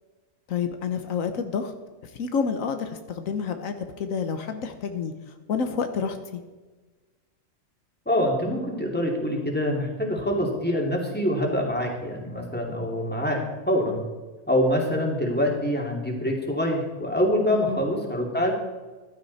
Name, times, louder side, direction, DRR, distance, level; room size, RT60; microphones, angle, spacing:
voice 1, 0.5-1.7 2.0-6.4 17.5-17.8, left 6 dB, 80° left, 7 dB, 1.3 m, -29 dB
voice 2, 8.1-14.0 14.5-18.5, left 1 dB, 5° left, -1 dB, 2.6 m, -25 dB
15.0 x 12.0 x 4.1 m, 1.3 s
omnidirectional pair, 1.4 m